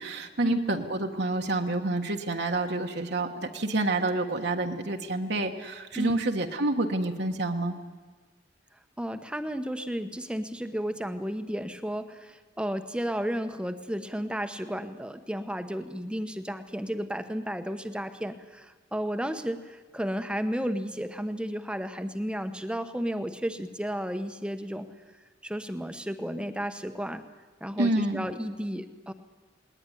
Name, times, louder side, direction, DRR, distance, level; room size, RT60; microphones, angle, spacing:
voice 1, 0.0-7.8 27.8-28.3, right 2 dB, 60° right, 3 dB, 1.4 m, -28 dB
voice 2, 9.0-24.9 25.4-27.2 27.6-29.1, equal, 5° right, 9 dB, 1.0 m, -33 dB
19.5 x 19.0 x 10.0 m, 1.3 s
head